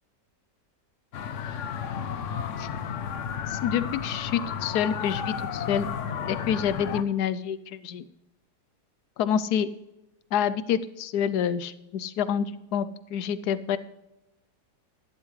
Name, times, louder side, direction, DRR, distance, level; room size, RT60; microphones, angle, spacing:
sound 1, 1.1-7.0, left 7 dB, 55° left, 0.9 m, -32 dB
voice 1, 3.5-5.9 6.3-8.0 9.2-9.7 10.3-13.8, left 8 dB, 75° left, 15 dB, 1.2 m, -27 dB
11.5 x 11.5 x 3.2 m, 0.92 s
omnidirectional pair, 1.8 m